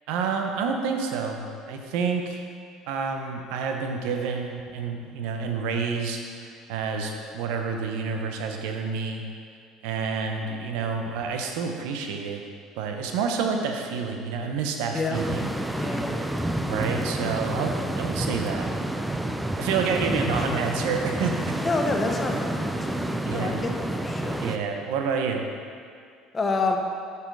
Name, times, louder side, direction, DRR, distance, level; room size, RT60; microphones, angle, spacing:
voice 1, 0.1-2.4 2.9-9.2 9.8-12.4 12.8-15.5 16.7-18.7 19.6-21.6 23.2-23.6 24.4-25.4, right 5 dB, 75° right, 3 dB, 0.9 m, -29 dB
sound 1, 15.1-24.6, right 1 dB, 5° right, 0.5 m, -29 dB
voice 2, 15.7-16.2 20.2-20.6 21.6-23.0 23.3-24.5 26.3-26.8, left 3 dB, 25° left, 3 dB, 1.0 m, -28 dB
7.7 x 5.9 x 4.7 m, 2.2 s
supercardioid pair, 85°, 0 cm